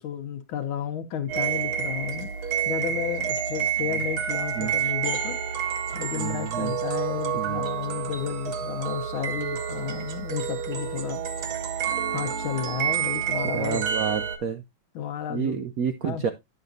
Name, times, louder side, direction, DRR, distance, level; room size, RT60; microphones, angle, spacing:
voice 1, 0.0-2.3 2.6-5.4 5.6-11.2 12.1-13.8 14.9-15.7 16.0-16.2, left 9 dB, 80° left, 1.6 m, -32 dB
sound 1, 1.3-14.4, right 7 dB, 60° right, 1.2 m, -29 dB
voice 2, 6.1-6.7 7.4-7.6 13.5-14.6 15.3-16.3, right 7 dB, 80° right, 0.8 m, -29 dB
10.0 x 6.9 x 2.6 m
omnidirectional pair, 2.2 m